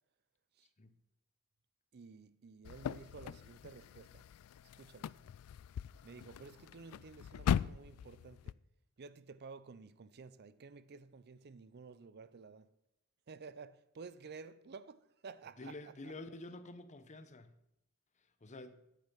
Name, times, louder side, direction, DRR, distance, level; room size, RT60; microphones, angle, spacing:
voice 1, 1.9-4.3 4.7-5.2 6.0-8.6 9.0-12.7 13.3-15.9, right 4 dB, 50° right, 0.5 m, -53 dB
sound 1, 2.6-8.5, left 8 dB, 85° left, 0.3 m, -40 dB
voice 2, 15.6-17.5 18.2-18.8, left 2 dB, 35° left, 0.8 m, -49 dB
9.0 x 8.4 x 5.8 m
head